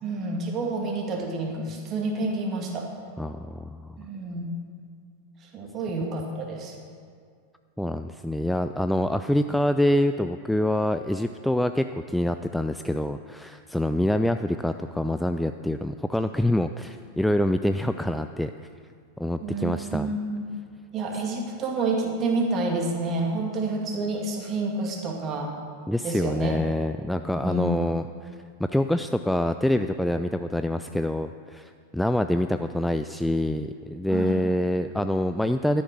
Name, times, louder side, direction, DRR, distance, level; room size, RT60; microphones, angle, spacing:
voice 1, 0.0-2.9 4.0-4.5 5.4-6.8 19.4-20.5 20.9-25.5 26.0-26.5 27.4-27.7 34.1-34.4, right 3 dB, 30° right, 1 dB, 2.3 m, -29 dB
voice 2, 3.2-4.0 7.8-18.5 19.2-20.1 25.9-28.3 28.6-35.8, left 1 dB, ahead, 8 dB, 0.4 m, -26 dB
12.5 x 10.0 x 6.1 m, 2.1 s
figure-of-eight pair, 90°, 0 cm